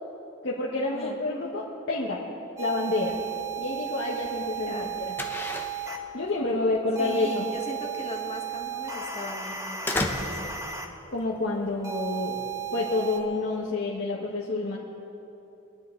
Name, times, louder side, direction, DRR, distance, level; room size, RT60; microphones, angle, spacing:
voice 1, 0.4-2.2 2.6-3.2 3.6-5.1 6.1-7.5 11.1-12.4 12.7-14.8, left 2 dB, 60° left, -5 dB, 1.5 m, -28 dB
sound 1, 2.6-6.0 6.9-10.9 11.8-13.2, right 8 dB, 15° right, 1.0 m, -34 dB
sound 2, 3.0-13.7, left 2 dB, 10° left, 1.0 m, -37 dB
voice 2, 4.5-4.9 6.6-10.8, left 1 dB, 30° left, 0 dB, 1.7 m, -39 dB
24.0 x 10.5 x 4.0 m, 2.8 s
head